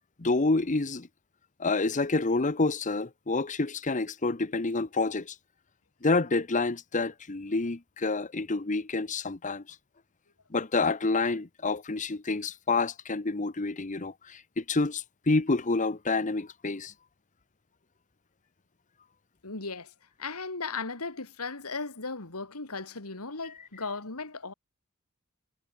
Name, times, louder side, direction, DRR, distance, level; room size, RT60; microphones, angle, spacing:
voice 1, 0.2-1.1 1.6-5.3 6.0-9.6 10.5-16.9, left 3 dB, 35° left, 1.0 m, -28 dB
voice 2, 19.4-19.9 20.2-24.5, left 4 dB, 85° left, 2.9 m, -36 dB
head